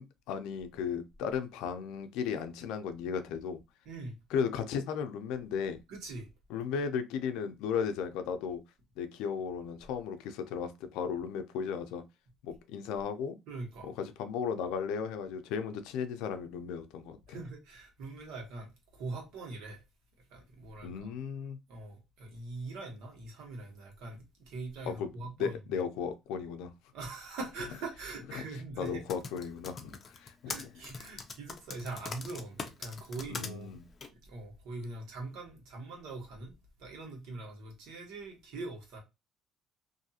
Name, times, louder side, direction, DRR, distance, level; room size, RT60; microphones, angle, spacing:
voice 1, 0.0-3.6 4.3-5.8 6.5-8.6 9.0-12.0 12.4-13.4 13.8-17.2 20.8-21.6 24.9-25.1 25.4-26.7 28.3-28.4 28.8-30.5 33.3-33.9, left 6 dB, 90° left, 0.4 m, -35 dB
voice 2, 3.8-4.2 5.9-6.3 13.5-14.0 17.3-19.8 20.3-21.1 21.7-25.8 26.9-29.0 30.4-33.8 34.2-36.5 36.8-39.0, right 3 dB, 85° right, 1.2 m, -42 dB
Typing, 28.9-33.5 34.0-34.1, left 5 dB, 35° left, 0.5 m, -41 dB
2.6 x 2.4 x 2.7 m
cardioid pair, 135°, 0 cm